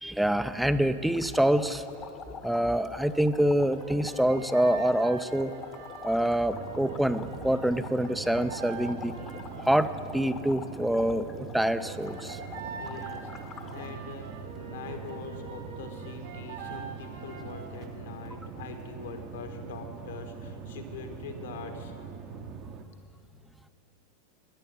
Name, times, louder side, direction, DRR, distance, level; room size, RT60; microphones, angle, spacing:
voice 1, 0.0-1.8 2.4-5.5 6.0-9.1 9.6-12.4, right 1 dB, ahead, 13 dB, 0.4 m, -26 dB
sound 1, 1.1-13.9, left 5 dB, 25° left, 0.9 m, -45 dB
sound 2, 3.8-10.0 11.8-18.0, right 5 dB, 55° right, 1.1 m, -44 dB
sound 3, 6.5-22.8, right 6 dB, 35° right, 0.7 m, -42 dB
voice 2, 12.8-21.9, left 5 dB, 60° left, 5 dB, 1.4 m, -43 dB
10.5 x 9.9 x 8.8 m, 2.6 s
figure-of-eight pair, 90°, 0 cm